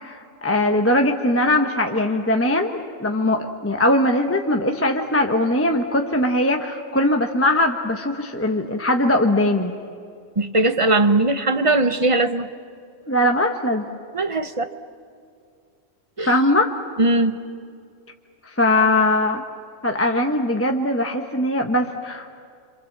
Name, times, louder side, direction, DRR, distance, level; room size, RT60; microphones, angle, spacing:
voice 1, 0.0-9.7 13.1-13.8 16.3-16.7 18.5-19.4 19.8-22.3, left 1 dB, 10° left, 3 dB, 1.1 m, -20 dB
voice 2, 10.4-12.5 14.1-14.7 16.2-16.3 17.0-17.4, right 2 dB, 30° right, 9 dB, 0.8 m, -19 dB
27.5 x 26.0 x 7.4 m, 2.2 s
omnidirectional pair, 1.3 m